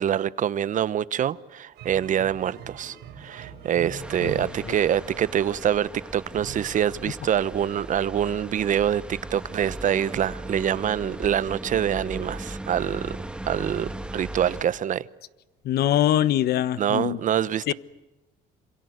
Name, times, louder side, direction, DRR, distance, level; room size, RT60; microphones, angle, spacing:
voice 1, 0.0-13.2 13.4-15.1 16.8-17.7, right 10 dB, 50° right, 1.0 m, -25 dB
sound 1, 1.7-7.0 7.7-7.8 9.2-9.3 9.5-9.6 10.9-11.0 12.1-12.2 14.2-14.3, right 6 dB, 80° right, 5.2 m, -43 dB
sound 2, 4.0-14.6, right 1 dB, 5° right, 1.6 m, -38 dB
voice 2, 15.6-17.2 17.7-17.8, left 12 dB, 70° left, 1.2 m, -22 dB
27.0 x 27.0 x 8.1 m
cardioid pair, 110°, 17 cm